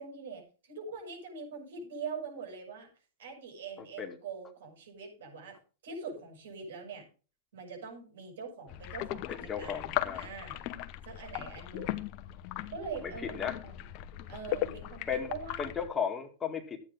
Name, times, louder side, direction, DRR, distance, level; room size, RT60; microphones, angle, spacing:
voice 1, 0.0-2.9 3.2-5.6 5.8-7.1 7.5-10.6 11.0-12.1 12.7-13.9 14.3-15.7, right 5 dB, 75° right, 2 dB, 7.6 m, -43 dB
voice 2, 3.8-4.2 9.3-10.3 13.0-13.6 15.1-15.3 15.6-16.8, left 7 dB, 20° left, 4 dB, 2.2 m, -35 dB
sound 1, 8.7-15.9, left 14 dB, 50° left, 1.0 m, -38 dB
14.0 x 9.2 x 3.9 m, 0.36 s
hypercardioid pair, 105°, 0 cm